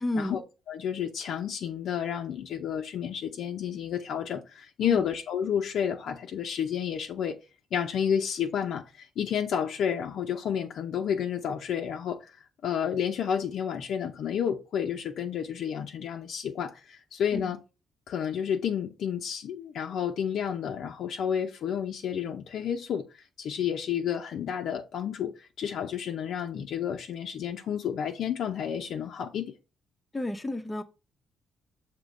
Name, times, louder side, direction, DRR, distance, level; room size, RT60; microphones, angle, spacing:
voice 1, 0.0-0.4 4.8-5.0 17.3-17.5 30.1-30.8, left 1 dB, 20° left, 0.8 m, -31 dB
voice 2, 0.7-7.4 7.7-17.6 18.1-29.5, left 8 dB, 70° left, 0.6 m, -31 dB
6.1 x 3.0 x 5.2 m
cardioid pair, 90°, 0 cm